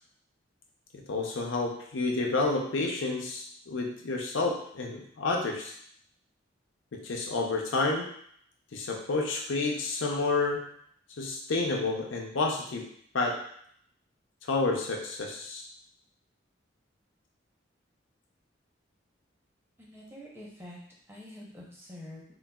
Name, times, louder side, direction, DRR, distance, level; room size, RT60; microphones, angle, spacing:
voice 1, 0.9-5.7 6.9-8.1 8.7-10.7 11.2-12.9 13.1-13.4 14.5-15.6, left 3 dB, 70° left, 0 dB, 0.6 m, -30 dB
voice 2, 19.8-20.8 21.1-22.2, left 1 dB, 10° right, -4 dB, 0.7 m, -46 dB
3.9 x 2.4 x 2.3 m, 0.64 s
head